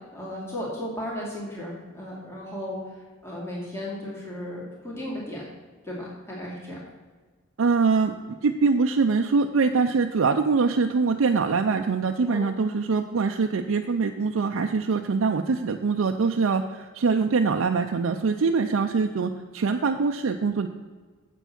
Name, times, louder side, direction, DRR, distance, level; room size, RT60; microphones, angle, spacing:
voice 1, 0.0-5.4 5.8-6.8 12.3-12.4, left 1 dB, 15° left, -5 dB, 2.3 m, -35 dB
voice 2, 7.6-20.7, right 4 dB, 85° right, 4 dB, 0.5 m, -23 dB
7.9 x 7.0 x 5.9 m, 1.4 s
head